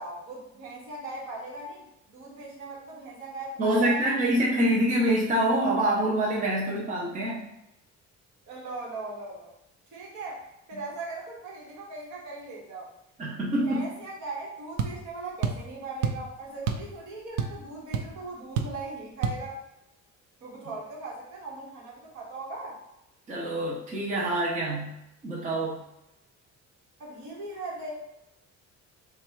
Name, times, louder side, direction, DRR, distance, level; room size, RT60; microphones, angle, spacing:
voice 1, 0.0-1.8 2.1-4.2 8.5-9.5 9.9-10.4 10.7-12.9 13.6-19.6 20.4-22.8 27.0-28.1, right 2 dB, 65° right, -2 dB, 1.3 m, -39 dB
voice 2, 3.6-7.4 13.2-13.8 23.3-24.9 25.2-25.8, right 1 dB, 25° right, -3 dB, 0.5 m, -26 dB
sound 1, 14.8-15.0 15.4-15.7 16.0-16.3 16.7-16.9 17.2-17.7 17.9-18.1 18.6-18.8 19.2-19.4, right 7 dB, 85° right, 0.5 m, -28 dB
3.5 x 2.2 x 4.3 m, 0.87 s
cardioid pair, 170°, 31 cm